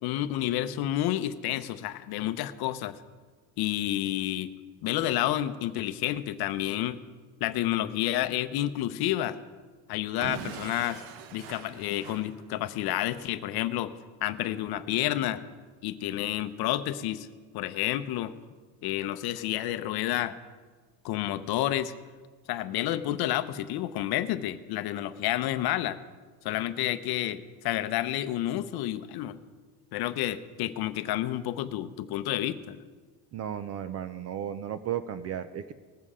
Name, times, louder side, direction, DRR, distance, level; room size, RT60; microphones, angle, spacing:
voice 1, 0.0-3.0 3.6-4.5 4.8-7.0 7.4-9.4 9.9-11.0 11.3-13.9 14.2-15.4 15.8-17.3 17.5-18.3 18.8-20.4 21.0-21.9 22.5-26.0 26.4-29.4 29.9-32.8, left 13 dB, 50° left, 11 dB, 0.7 m, -30 dB
Explosion / Shatter, 10.2-13.0, right 8 dB, 85° right, 1.1 m, -42 dB
voice 2, 33.3-35.7, right 9 dB, 35° right, 12 dB, 0.4 m, -34 dB
19.5 x 7.5 x 4.9 m, 1.4 s
cardioid pair, 140°, 49 cm